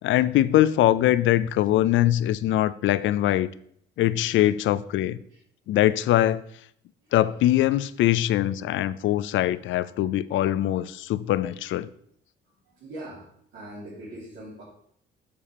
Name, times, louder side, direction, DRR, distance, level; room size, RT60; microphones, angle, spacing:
voice 1, 0.0-3.5 4.0-5.2 5.7-6.4 7.1-11.9, left 13 dB, 75° left, 0.4 m, -22 dB
voice 2, 12.8-13.2 13.5-14.6, right 1 dB, 70° right, 2.7 m, -41 dB
6.9 x 6.8 x 4.2 m
cardioid pair, 90°, 20 cm